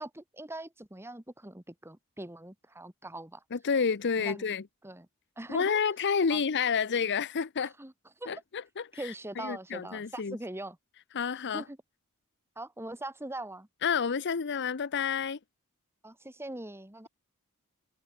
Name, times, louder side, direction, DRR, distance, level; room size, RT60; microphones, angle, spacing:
voice 1, 0.0-3.4 4.2-4.5 4.8-5.1 5.4-5.8 6.3-6.4 7.6-7.9 8.2-8.3 8.9-10.8 11.5-11.8 12.6-13.7 16.0-17.1, right 1 dB, 10° right, 1.8 m, -41 dB
voice 2, 3.5-4.6 5.5-7.7 8.3-10.4 11.1-11.6 13.8-15.4, left 6 dB, 55° left, 0.7 m, -29 dB
open air
head